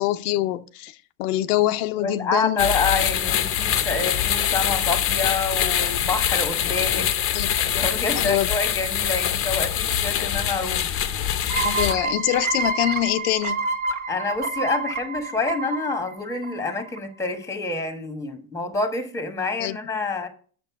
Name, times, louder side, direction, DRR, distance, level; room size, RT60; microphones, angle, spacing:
voice 1, 0.0-2.7 7.3-7.5 8.1-8.5 11.6-13.6 19.6-19.8, left 15 dB, 85° left, 0.7 m, -24 dB
voice 2, 2.0-7.1 7.8-11.0 14.1-20.3, left 3 dB, 5° left, 1.2 m, -27 dB
sound 1, 2.6-11.9, left 10 dB, 30° left, 0.7 m, -24 dB
sound 2, 11.5-17.0, right 4 dB, 45° right, 1.3 m, -28 dB
7.7 x 6.7 x 4.6 m
supercardioid pair, 140°, 44 cm